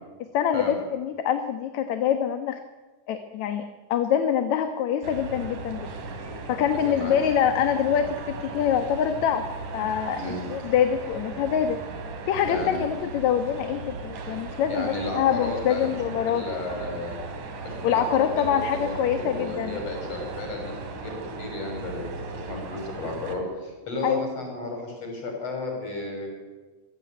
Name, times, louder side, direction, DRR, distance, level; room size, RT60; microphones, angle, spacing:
voice 1, 0.2-2.6 3.1-3.6 3.9-5.9 6.5-9.4 9.7-10.2 10.5-11.8 12.3-16.4 17.8-19.8 24.0-24.3, left 9 dB, 70° left, 8 dB, 2.4 m, -25 dB
sound 1, 5.0-23.4, right 3 dB, 80° right, 4.3 m, -37 dB
voice 2, 12.5-12.9 14.7-15.9 16.3-17.2 17.6-20.7 21.0-22.0 22.3-26.3, left 2 dB, 50° left, 2 dB, 7.7 m, -33 dB
26.0 x 17.0 x 9.4 m, 1.3 s
omnidirectional pair, 3.6 m